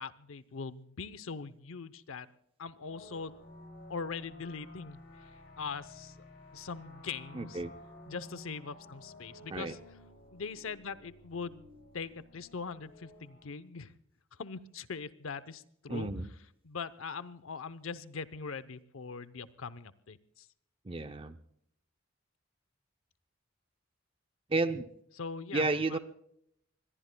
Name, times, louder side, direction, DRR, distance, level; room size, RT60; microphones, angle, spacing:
voice 1, 0.0-2.3 2.6-3.4 3.9-5.0 5.6-6.1 6.5-7.6 8.1-9.8 10.3-11.7 11.9-13.9 14.4-16.1 16.6-20.5 25.2-26.0, left 5 dB, 85° left, 15 dB, 0.7 m, -41 dB
sound 1, 2.9-13.5, left 1 dB, 55° left, 7.7 m, -53 dB
voice 2, 7.3-7.7 9.5-9.7 15.9-16.3 20.9-21.4 24.5-24.9 25.5-26.0, right 3 dB, 25° right, 9 dB, 0.5 m, -32 dB
25.5 x 21.0 x 2.2 m, 0.72 s
head